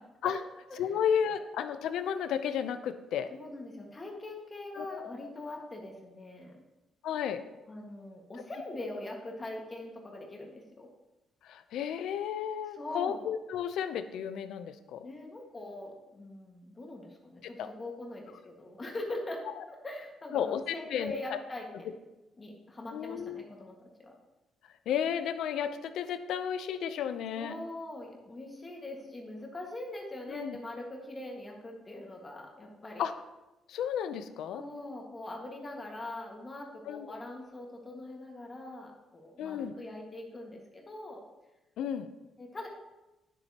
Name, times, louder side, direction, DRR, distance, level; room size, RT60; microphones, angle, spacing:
voice 1, 0.8-3.3 4.8-5.3 7.0-7.4 11.4-15.1 17.6-17.7 20.3-21.4 22.9-23.4 24.9-27.6 30.3-30.6 33.0-33.1 33.7-34.6 36.9-37.1 39.4-39.7 41.8-42.1, left 8 dB, 80° left, 11 dB, 0.5 m, -33 dB
voice 2, 3.3-6.6 7.7-10.9 12.8-13.3 15.0-21.9 22.4-23.8 24.0-24.1 27.4-33.1 34.5-41.2 42.4-42.7, left 2 dB, 25° left, 0 dB, 1.7 m, -42 dB
9.8 x 7.3 x 2.9 m, 1.0 s
cardioid pair, 90°, 0 cm